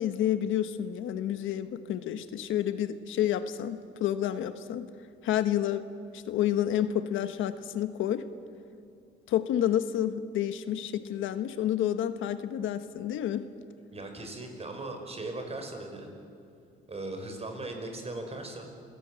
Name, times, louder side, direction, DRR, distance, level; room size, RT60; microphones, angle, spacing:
voice 1, 0.0-4.9 5.2-5.9 6.1-8.3 9.3-13.5, left 11 dB, 85° left, 11 dB, 1.2 m, -29 dB
voice 2, 13.9-16.1 16.9-18.7, right 2 dB, 30° right, 4 dB, 5.4 m, -38 dB
28.0 x 17.0 x 9.0 m, 2.5 s
cardioid pair, 90°, 20 cm